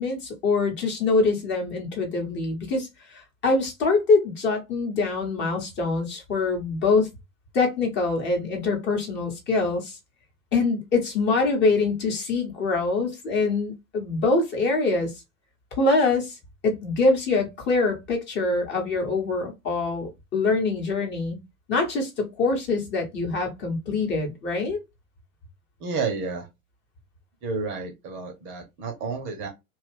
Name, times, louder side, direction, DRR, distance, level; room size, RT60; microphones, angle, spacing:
voice 1, 0.0-7.1 7.5-10.0 10.5-15.1 15.8-16.4 16.6-21.4 21.7-24.8, left 3 dB, 25° left, 1.1 m, -24 dB
voice 2, 25.8-26.4 27.4-29.5, right 4 dB, 30° right, 0.7 m, -30 dB
2.8 x 2.4 x 3.3 m
figure-of-eight pair, 90°, 42 cm